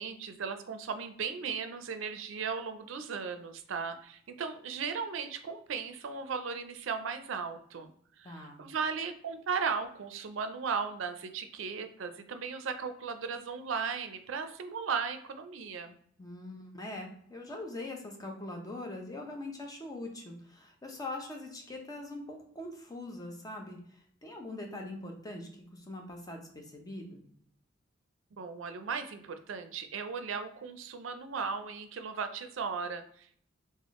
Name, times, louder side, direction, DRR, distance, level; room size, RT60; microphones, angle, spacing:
voice 1, 0.0-7.9 8.2-15.9 28.3-33.4, right 5 dB, 80° right, 8 dB, 0.4 m, -36 dB
voice 2, 8.2-8.7 16.2-23.8 24.2-27.3, left 2 dB, 20° left, 2 dB, 0.7 m, -42 dB
3.5 x 2.1 x 3.6 m, 0.64 s
head